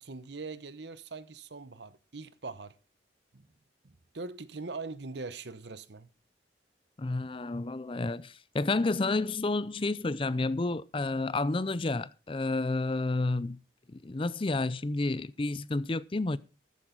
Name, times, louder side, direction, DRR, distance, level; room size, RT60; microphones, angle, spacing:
voice 1, 0.0-2.7 3.3-3.5 3.8-6.1, right 3 dB, 65° right, 0.9 m, -42 dB
voice 2, 7.0-13.6 13.9-16.4, left 2 dB, 30° left, 0.5 m, -30 dB
14.0 x 10.5 x 3.9 m
head